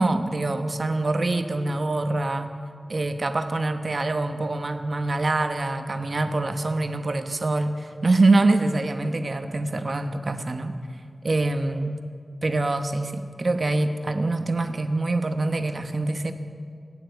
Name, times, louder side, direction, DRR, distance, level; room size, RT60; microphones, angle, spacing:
voice 1, 0.0-2.5 2.9-10.8 11.2-12.0 12.4-16.3, right 2 dB, 55° right, 7 dB, 1.0 m, -24 dB
17.5 x 10.0 x 8.1 m, 2.2 s
wide cardioid pair, 90°, 0 cm